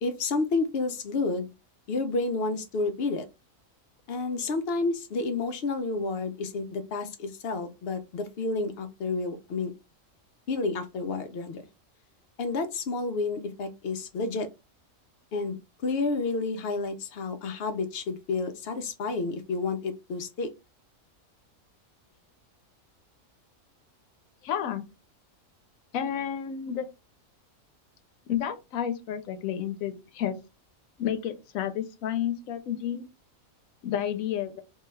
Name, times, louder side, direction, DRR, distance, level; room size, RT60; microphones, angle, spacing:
voice 1, 0.0-1.5 1.9-3.3 4.1-9.7 10.5-11.6 12.4-14.5 15.3-20.5, left 3 dB, 65° left, 0.6 m, -30 dB
voice 2, 24.4-24.8 25.9-26.9 28.3-30.4 31.0-33.0 33.8-34.6, left 9 dB, 85° left, 1.0 m, -31 dB
2.6 x 2.3 x 3.0 m
omnidirectional pair, 1.4 m